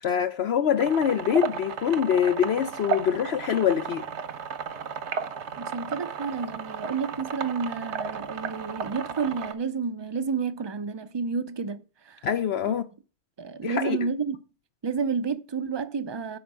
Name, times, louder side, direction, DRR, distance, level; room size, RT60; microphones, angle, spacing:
voice 1, 0.0-4.0 12.2-12.8 13.6-14.0, left 8 dB, 65° left, 0.8 m, -24 dB
sound 1, 0.8-9.5, right 5 dB, 70° right, 1.2 m, -34 dB
voice 2, 5.6-12.3 12.7-12.8 13.4-14.4 14.8-16.4, right 5 dB, 30° right, 0.5 m, -30 dB
11.0 x 4.4 x 7.3 m
omnidirectional pair, 1.2 m